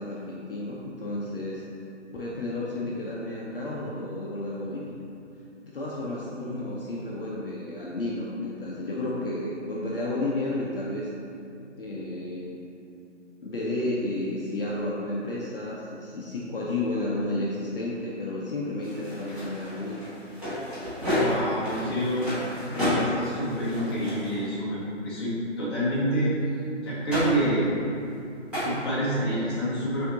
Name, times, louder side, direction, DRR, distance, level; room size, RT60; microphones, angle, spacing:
voice 1, 0.0-1.6 2.1-4.9 5.6-11.1 11.8-12.5 13.4-20.0, left 2 dB, 50° left, -5 dB, 0.6 m, -32 dB
sound 1, 18.8-24.4 27.1-27.5 28.5-28.7, equal, 5° right, 0.9 m, -31 dB
voice 2, 21.0-22.2 22.6-26.3 26.8-27.7 28.6-30.1, equal, 20° left, -8 dB, 0.8 m, -27 dB
6.4 x 2.7 x 2.7 m, 2.6 s
hypercardioid pair, 155°, 37 cm